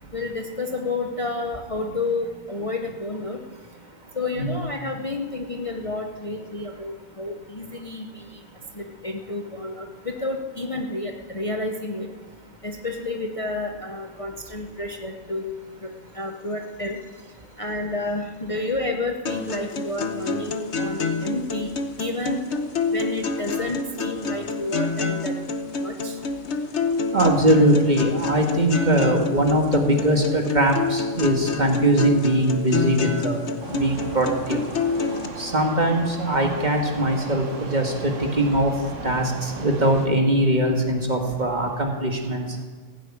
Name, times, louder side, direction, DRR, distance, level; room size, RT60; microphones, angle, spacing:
voice 1, 0.1-3.4 4.2-8.3 8.7-12.1 12.6-15.5 15.8-17.0 17.6-21.7 22.0-22.4 22.9-25.4 25.8-26.2, left 2 dB, 30° left, 3 dB, 0.9 m, -30 dB
sound 1, 19.3-35.3, left 4 dB, 65° left, 1.3 m, -28 dB
voice 2, 27.1-33.4 33.7-34.6 35.4-42.6, right 1 dB, 35° right, 2 dB, 2.0 m, -21 dB
sound 2, 33.6-40.1, right 3 dB, 70° right, 1.7 m, -36 dB
15.5 x 8.2 x 8.9 m, 1.4 s
omnidirectional pair, 1.3 m